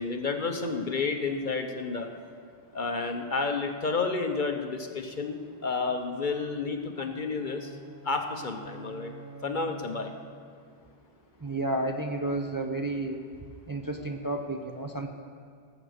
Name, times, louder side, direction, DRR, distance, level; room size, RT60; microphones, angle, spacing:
voice 1, 0.0-2.1 2.7-7.7 8.0-9.1 9.4-10.1, left 4 dB, 50° left, 5 dB, 0.9 m, -31 dB
sound 1, 7.0-10.5, right 3 dB, 50° right, 3.8 m, -47 dB
voice 2, 11.4-13.2 13.7-15.1, right 2 dB, 20° right, 3 dB, 0.7 m, -31 dB
18.5 x 7.7 x 6.5 m, 2.2 s
omnidirectional pair, 1.1 m